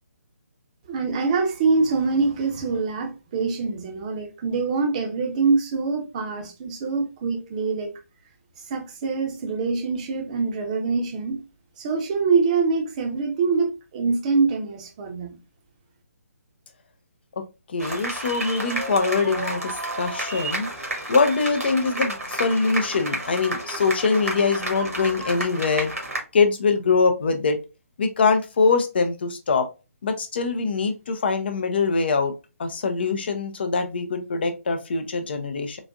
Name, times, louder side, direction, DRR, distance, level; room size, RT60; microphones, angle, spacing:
voice 1, 0.9-7.9 8.7-11.4 11.8-15.4, right 4 dB, 25° right, 0.7 m, -24 dB
voice 2, 17.7-25.9 26.3-27.6 28.0-29.7 30.0-32.3 32.6-35.8, left 4 dB, 40° left, 0.5 m, -23 dB
sound 1, 17.8-26.2, right 1 dB, 75° right, 1.6 m, -31 dB
3.9 x 2.5 x 2.3 m
figure-of-eight pair, 140°, 8 cm